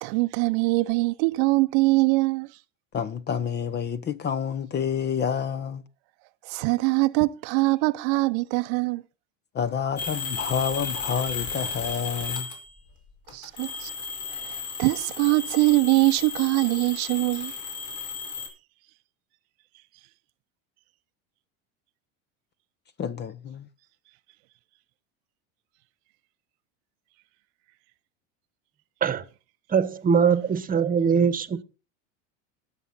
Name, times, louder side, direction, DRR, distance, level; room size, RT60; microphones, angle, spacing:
voice 1, 0.0-2.5 6.5-9.0 13.3-13.9 14.4-17.5, right 23 dB, 65° right, 0.7 m, -23 dB
voice 2, 2.9-5.8 9.5-12.5 23.0-23.7, left 7 dB, 25° left, 0.7 m, -28 dB
sound 1, 10.0-12.8 13.3-18.5, left 5 dB, 50° left, 5.1 m, -34 dB
voice 3, 29.7-31.6, right 6 dB, 20° right, 1.2 m, -22 dB
19.5 x 7.0 x 4.2 m
supercardioid pair, 115°, 38 cm